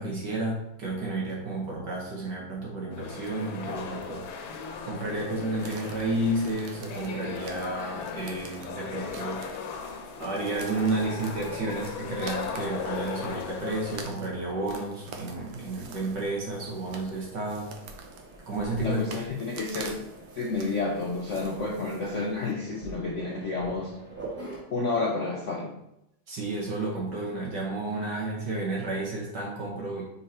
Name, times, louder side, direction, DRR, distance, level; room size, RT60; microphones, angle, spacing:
voice 1, 0.0-4.3 4.8-9.5 10.2-17.7 18.5-19.0 26.3-30.0, right 2 dB, 60° right, -3 dB, 2.1 m, -31 dB
sound 1, 2.9-14.1, left 5 dB, 85° left, 1.6 m, -37 dB
sound 2, 5.6-22.5, right 5 dB, 75° right, 1.5 m, -47 dB
Mechanisms, 6.1-24.6, right 2 dB, 5° right, 2.2 m, -48 dB
voice 2, 18.8-19.9 20.4-23.9 24.7-25.7, left 3 dB, 65° left, -1 dB, 0.7 m, -30 dB
5.6 x 3.9 x 4.3 m, 0.83 s
omnidirectional pair, 2.2 m